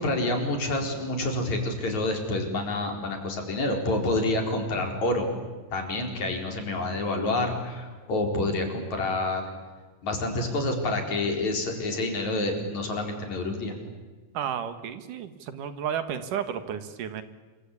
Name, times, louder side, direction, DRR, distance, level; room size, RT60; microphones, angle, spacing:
voice 1, 0.0-5.3 5.7-9.4 10.0-13.7, left 2 dB, 60° left, 3 dB, 5.9 m, -28 dB
voice 2, 14.3-17.2, right 8 dB, 80° right, 10 dB, 3.2 m, -32 dB
27.5 x 25.0 x 8.5 m, 1.3 s
omnidirectional pair, 3.6 m